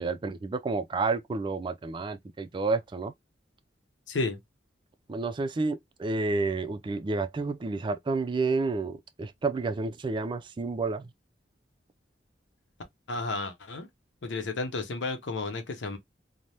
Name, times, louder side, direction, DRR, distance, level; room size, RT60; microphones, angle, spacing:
voice 1, 0.0-3.1 5.1-11.1, right 3 dB, 25° right, 0.3 m, -30 dB
voice 2, 4.1-4.4 13.1-13.9 14.2-16.0, left 3 dB, 80° left, 0.7 m, -32 dB
3.3 x 2.1 x 2.7 m
head